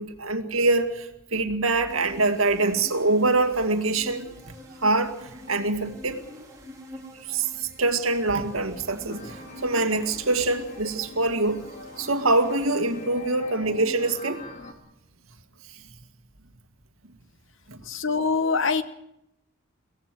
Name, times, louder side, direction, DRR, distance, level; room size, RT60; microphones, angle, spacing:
voice 1, 0.0-4.3 4.8-5.2 5.5-6.2 7.3-11.7 12.0-14.4 17.7-17.8, right 2 dB, 85° right, 7 dB, 2.0 m, -24 dB
sound 1, 1.9-13.6, equal, 15° right, 4.4 m, -45 dB
sound 2, 9.1-14.7, left 2 dB, 40° left, 2.5 m, -42 dB
voice 2, 17.9-18.8, left 4 dB, 65° left, 12 dB, 1.2 m, -24 dB
23.0 x 17.0 x 7.6 m, 0.82 s
head